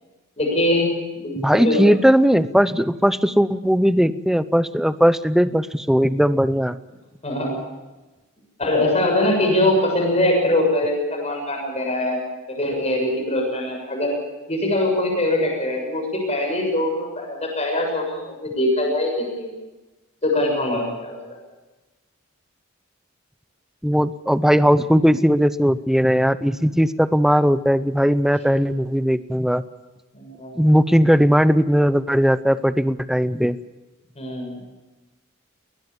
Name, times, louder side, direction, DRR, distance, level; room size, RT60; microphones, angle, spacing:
voice 1, 0.4-0.9 1.2-1.4 1.6-1.8 7.2-7.6 8.6-12.2 12.5-14.2 14.5-19.5 20.2-21.2 30.1-30.5 34.2-34.6, left 1 dB, 30° left, 1 dB, 7.2 m, -22 dB
voice 2, 1.4-6.8 23.8-29.6 30.5-33.6, equal, ahead, 13 dB, 0.7 m, -18 dB
20.5 x 20.5 x 7.3 m, 1.1 s
head